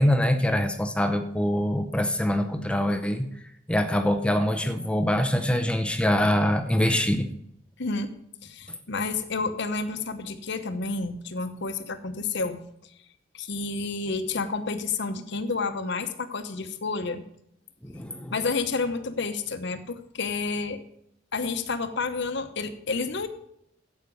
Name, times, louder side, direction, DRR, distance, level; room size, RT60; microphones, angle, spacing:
voice 1, 0.0-3.3 3.7-7.3 17.8-18.3, left 1 dB, 5° left, 7 dB, 0.7 m, -24 dB
voice 2, 7.8-8.1 8.4-12.6 13.3-17.2 18.3-20.8 21.3-23.3, left 4 dB, 65° left, 9 dB, 1.0 m, -30 dB
9.7 x 8.2 x 5.3 m, 0.73 s
head